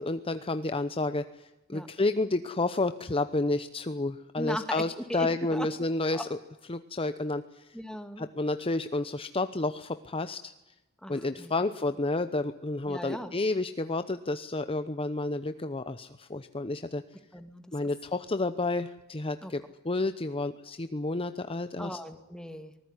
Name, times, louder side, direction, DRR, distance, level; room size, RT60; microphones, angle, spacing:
voice 1, 0.0-6.3 6.7-7.7 8.2-10.5 11.1-17.0 17.7-22.0, left 2 dB, 25° left, 10 dB, 0.8 m, -30 dB
voice 2, 4.4-5.7 6.1-6.3 7.7-8.3 11.0-11.6 12.9-13.4 17.3-17.8 19.4-19.6 21.8-22.8, equal, 5° left, 8 dB, 2.2 m, -38 dB
25.5 x 20.0 x 9.8 m, 0.99 s
head